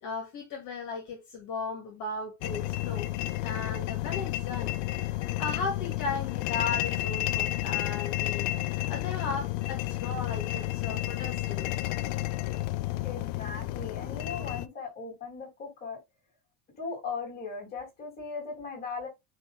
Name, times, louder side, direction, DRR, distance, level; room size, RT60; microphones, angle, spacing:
voice 1, 0.0-3.1 3.4-4.7 5.0-11.7, left 4 dB, 45° left, 2.4 m, -36 dB
sound 1, 2.4-14.7, left 16 dB, 85° left, 0.7 m, -31 dB
voice 2, 13.0-16.0 16.8-19.1, left 4 dB, 25° left, 3.4 m, -38 dB
9.1 x 3.0 x 3.6 m
cardioid pair, 175°, 41 cm